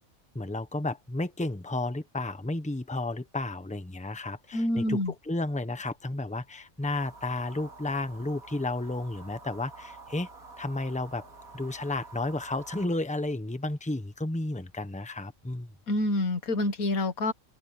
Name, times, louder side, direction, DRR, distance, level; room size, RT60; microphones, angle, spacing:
voice 1, 0.3-10.3 10.6-11.2 11.5-15.7, left 2 dB, 5° left, 1.1 m, -32 dB
voice 2, 4.5-5.1 15.9-17.3, left 1 dB, 85° left, 2.0 m, -27 dB
sound 1, 6.8-12.9, right 3 dB, 85° right, 3.3 m, -49 dB
open air
omnidirectional pair, 1.4 m